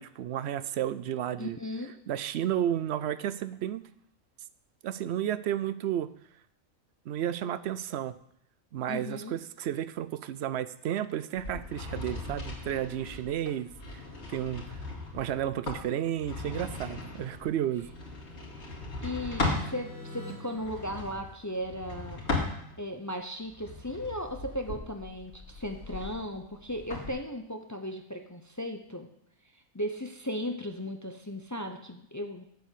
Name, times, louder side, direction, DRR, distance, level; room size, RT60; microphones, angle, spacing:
voice 1, 0.0-1.6 2.1-3.8 4.8-6.1 7.1-8.2 8.7-13.7 14.3-14.8 15.1-17.9, right 11 dB, 65° right, 15 dB, 0.7 m, -32 dB
voice 2, 1.4-1.9 8.9-9.4 19.0-22.2 22.8-29.1 29.7-32.5, equal, 20° left, 5 dB, 0.5 m, -36 dB
sound 1, 11.4-19.7 20.5-23.0 23.5-27.1, left 2 dB, 55° left, 2.7 m, -37 dB
sound 2, 16.5-22.0, equal, 5° right, 3.3 m, -49 dB
8.2 x 8.0 x 6.7 m, 0.73 s
omnidirectional pair, 1.4 m